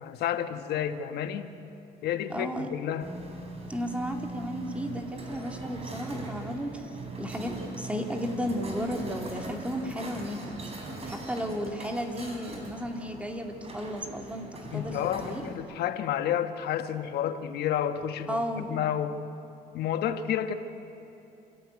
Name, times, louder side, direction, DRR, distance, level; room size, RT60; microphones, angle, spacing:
voice 1, 0.0-1.5 2.0-3.1 14.7-19.2 19.7-20.5, left 10 dB, 75° left, 8 dB, 1.5 m, -30 dB
voice 2, 2.3-2.7 3.7-6.9 7.2-10.4 11.1-15.0 15.2-15.4 18.3-18.7, equal, 5° right, 3 dB, 2.6 m, -34 dB
sound 1, 3.0-15.6, right 2 dB, 35° right, 5.0 m, -40 dB
27.5 x 15.0 x 9.5 m, 2.9 s
cardioid pair, 110°, 17 cm